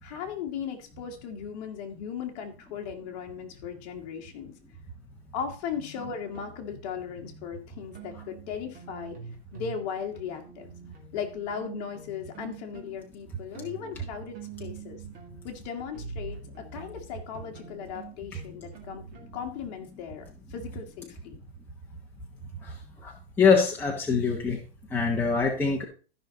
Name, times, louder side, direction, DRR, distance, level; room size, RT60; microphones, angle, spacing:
voice 1, 0.0-4.5 5.3-9.2 9.5-10.7 11.1-15.0 15.4-19.0 19.3-21.4, left 7 dB, 40° left, 3 dB, 1.9 m, -37 dB
sound 1, 5.7-9.8 10.1-19.6, right 5 dB, 25° right, 2.4 m, -46 dB
voice 2, 23.4-24.6 24.9-25.8, left 5 dB, 5° left, -1 dB, 1.1 m, -23 dB
13.5 x 5.8 x 3.9 m, 0.35 s
hypercardioid pair, 155°, 33 cm